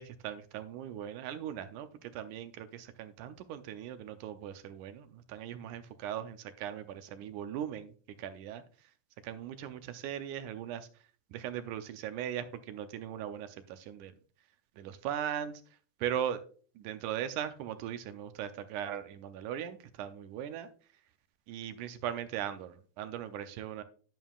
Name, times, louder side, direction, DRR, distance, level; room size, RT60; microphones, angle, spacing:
voice 1, 0.0-7.9 8.2-8.6 9.2-10.9 11.3-14.1 14.8-15.6 16.0-16.4 16.8-20.7 21.5-23.8, right 10 dB, 80° right, 9 dB, 2.1 m, -39 dB
10.5 x 9.1 x 2.4 m, 0.42 s
omnidirectional pair, 3.6 m